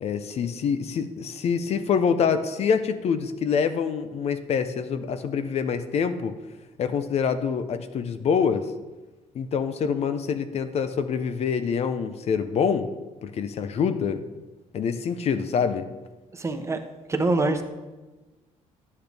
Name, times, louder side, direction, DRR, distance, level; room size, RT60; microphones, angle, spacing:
voice 1, 0.0-6.3 6.8-8.7 9.3-12.9 13.2-14.2 14.7-15.8, left 6 dB, 50° left, 10 dB, 0.8 m, -25 dB
voice 2, 16.4-16.8 17.1-17.6, right 2 dB, 20° right, 5 dB, 1.0 m, -24 dB
11.5 x 8.4 x 3.5 m, 1.2 s
cardioid pair, 110°, 13 cm